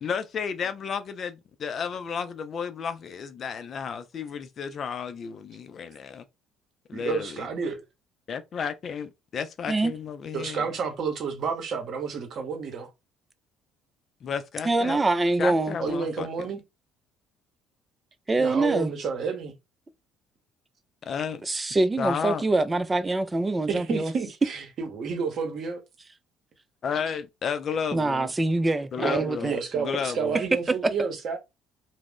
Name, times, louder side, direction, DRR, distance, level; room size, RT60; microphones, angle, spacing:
voice 1, 0.0-6.2 6.9-7.5 8.3-10.7 14.2-15.0 15.4-16.5 21.0-21.3 22.0-22.4 26.8-28.3 28.9-30.4, left 6 dB, 50° left, 0.4 m, -32 dB
voice 2, 6.9-7.8 10.3-12.9 15.8-16.6 18.4-19.5 23.7-25.8 29.0-31.4, right 5 dB, 50° right, 0.8 m, -30 dB
voice 3, 14.7-15.8 18.3-18.9 21.8-24.1 27.9-29.6 30.7-30.9, right 2 dB, 20° right, 0.4 m, -24 dB
2.4 x 2.0 x 3.5 m
hypercardioid pair, 55°, 0 cm